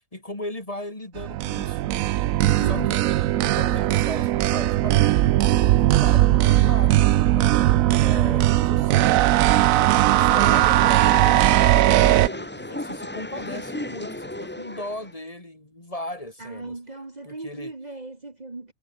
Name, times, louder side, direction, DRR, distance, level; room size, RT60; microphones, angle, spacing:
voice 1, 0.1-2.0 2.7-3.0 3.3-5.0 5.6-7.5 8.0-9.2 10.1-11.4 11.9-16.8 17.2-17.7, left 1 dB, 25° left, 2.7 m, -37 dB
sound 1, 1.2-12.3, right 14 dB, 85° right, 1.0 m, -19 dB
sound 2, 10.2-15.1, left 1 dB, 10° left, 1.3 m, -34 dB
voice 2, 16.4-18.7, right 2 dB, 30° right, 2.1 m, -37 dB
omnidirectional pair, 1.4 m